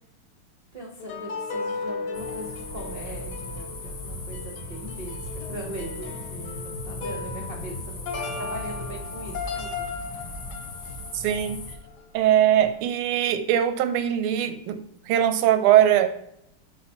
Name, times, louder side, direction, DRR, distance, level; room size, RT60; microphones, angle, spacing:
voice 1, 0.7-9.9, right 1 dB, 65° right, 0 dB, 0.5 m, -40 dB
sound 1, 1.0-12.3 12.6-12.7, left 4 dB, 65° left, 1.2 m, -36 dB
sound 2, 2.1-11.7, left 1 dB, 45° left, 1.3 m, -37 dB
voice 2, 11.1-11.7 12.1-16.1, right 11 dB, 90° right, 10 dB, 1.5 m, -21 dB
5.7 x 4.8 x 4.3 m, 0.77 s
omnidirectional pair, 2.4 m